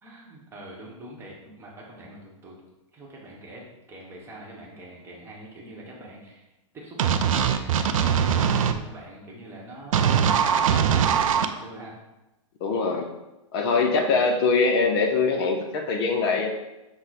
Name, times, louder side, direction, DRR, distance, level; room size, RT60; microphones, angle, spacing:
voice 1, 0.0-2.6 2.9-6.5 6.7-12.0, right 1 dB, 15° right, -3 dB, 0.9 m, -43 dB
sound 1, 7.0-8.7 9.9-11.5, right 8 dB, 85° right, 0.4 m, -21 dB
voice 2, 12.6-13.1 13.5-16.5, left 4 dB, 45° left, 3 dB, 0.6 m, -23 dB
6.0 x 2.1 x 4.0 m, 1.0 s
hypercardioid pair, 140°, 17 cm